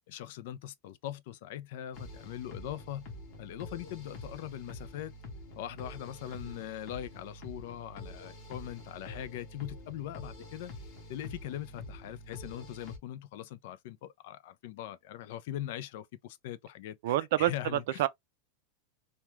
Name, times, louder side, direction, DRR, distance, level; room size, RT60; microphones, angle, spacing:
voice 1, 0.1-3.1 3.4-5.1 5.6-10.7 11.1-18.0, left 12 dB, 60° left, 0.4 m, -41 dB
sound 1, 1.9-13.0, left 2 dB, 40° left, 0.8 m, -46 dB
voice 2, 17.0-18.1, right 14 dB, 65° right, 0.3 m, -28 dB
2.3 x 2.2 x 3.0 m
supercardioid pair, 160°, 0 cm